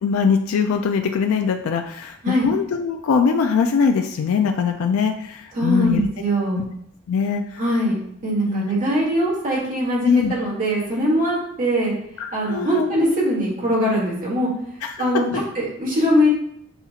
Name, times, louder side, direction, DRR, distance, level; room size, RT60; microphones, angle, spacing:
voice 1, 0.0-2.2 2.4-6.1 6.5-6.6 7.1-7.6 8.5-8.6 10.0-10.3 12.2-13.1 14.8-15.1, left 5 dB, 80° left, 5 dB, 0.3 m, -22 dB
voice 2, 5.5-6.6 7.6-8.0 8.2-11.9 12.3-14.5 15.0-16.3, equal, 40° right, -6 dB, 1.6 m, -21 dB
6.8 x 2.4 x 2.8 m, 0.71 s
head